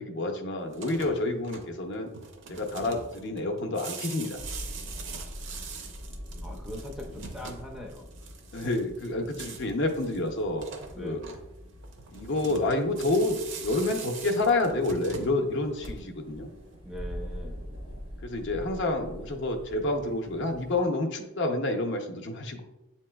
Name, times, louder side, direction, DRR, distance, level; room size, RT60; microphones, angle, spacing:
voice 1, 0.0-2.1 2.5-4.4 8.5-10.7 11.0-11.2 12.1-16.5 18.2-22.6, left 2 dB, 55° left, 3 dB, 0.6 m, -29 dB
sound 1, 0.6-16.3, right 5 dB, 60° right, 0.5 m, -43 dB
sound 2, 4.3-20.9, equal, 85° right, 1.1 m, -44 dB
voice 2, 6.4-8.1 10.9-11.4 16.8-17.6, equal, ahead, 0 dB, 0.4 m, -41 dB
7.5 x 2.9 x 2.2 m, 0.95 s
head